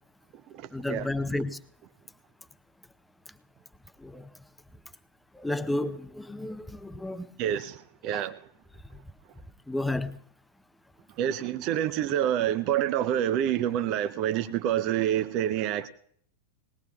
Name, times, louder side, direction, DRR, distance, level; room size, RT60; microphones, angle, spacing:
voice 1, 0.7-1.6 4.0-4.3 5.4-7.3 8.1-8.3 9.7-10.2, left 2 dB, 5° left, 0.6 m, -32 dB
voice 2, 7.4-7.8 8.0-8.3 11.2-15.9, right 11 dB, 40° right, 0.5 m, -27 dB
20.0 x 19.5 x 2.3 m
figure-of-eight pair, 90°, 0 cm